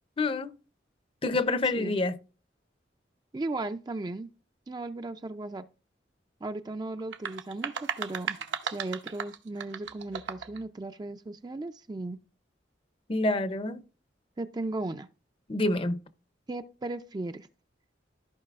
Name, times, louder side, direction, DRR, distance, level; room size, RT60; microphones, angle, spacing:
voice 1, 0.2-0.5 1.2-2.2 13.1-13.8 15.5-16.0, left 2 dB, 30° left, 0.6 m, -27 dB
voice 2, 3.3-4.3 4.7-5.6 6.4-8.4 8.7-12.2 14.4-15.1 16.5-17.5, right 2 dB, 20° right, 0.3 m, -36 dB
sound 1, 7.0-10.6, right 6 dB, 80° right, 0.8 m, -36 dB
14.0 x 5.3 x 2.4 m
head